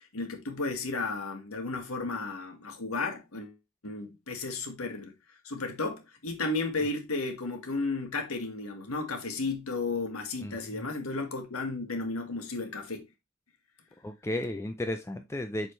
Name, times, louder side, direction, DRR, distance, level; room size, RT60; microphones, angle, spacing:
voice 1, 0.0-3.5 3.8-5.1 5.4-13.1, left 3 dB, 85° left, 1.6 m, -33 dB
voice 2, 10.4-10.9 14.0-15.7, left 1 dB, 15° left, 0.3 m, -34 dB
7.5 x 4.4 x 3.2 m
head